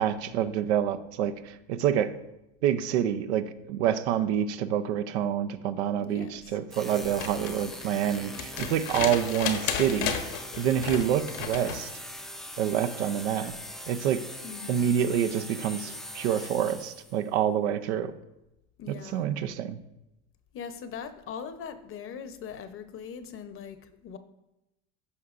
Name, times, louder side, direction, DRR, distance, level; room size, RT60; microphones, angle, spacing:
voice 1, 0.0-2.1 2.6-10.1 10.6-11.9 12.6-13.5 13.9-14.2 14.7-18.1 18.9-19.8, right 9 dB, 85° right, 11 dB, 0.7 m, -27 dB
voice 2, 6.0-6.4 14.4-14.9 18.8-19.3 20.5-23.8 24.0-24.2, left 7 dB, 40° left, 10 dB, 0.8 m, -41 dB
sound 1, 6.7-17.3, equal, ahead, 0.5 m, -41 dB
sound 2, 7.0-11.9 13.5-13.6, left 8 dB, 70° left, 1.1 m, -34 dB
14.0 x 5.5 x 2.5 m, 0.92 s
supercardioid pair, 95°, 33 cm